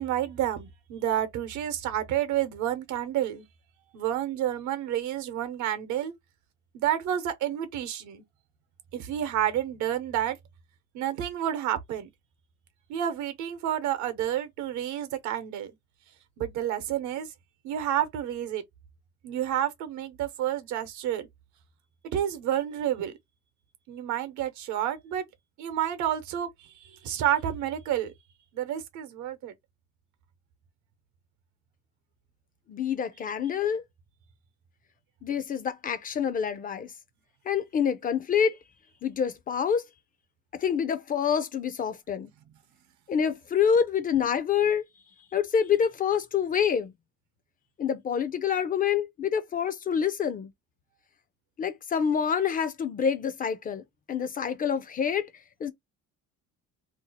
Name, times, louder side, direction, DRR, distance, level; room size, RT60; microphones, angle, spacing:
voice 1, 0.0-3.5 3.9-6.1 6.7-8.2 8.9-10.4 10.9-12.1 12.9-15.7 16.4-17.3 17.6-18.6 19.2-21.3 22.1-23.1 23.9-25.2 25.6-28.1 28.5-29.5, right 11 dB, 75° right, 0.9 m, -30 dB
voice 2, 32.7-33.8 35.2-36.9 37.5-38.6 39.0-39.9 40.5-42.3 43.1-44.8 45.3-46.9 47.8-50.5 51.6-53.8 54.1-55.3 55.6-55.7, left 7 dB, 30° left, 0.4 m, -27 dB
2.7 x 2.3 x 4.0 m
cardioid pair, 155°, 29 cm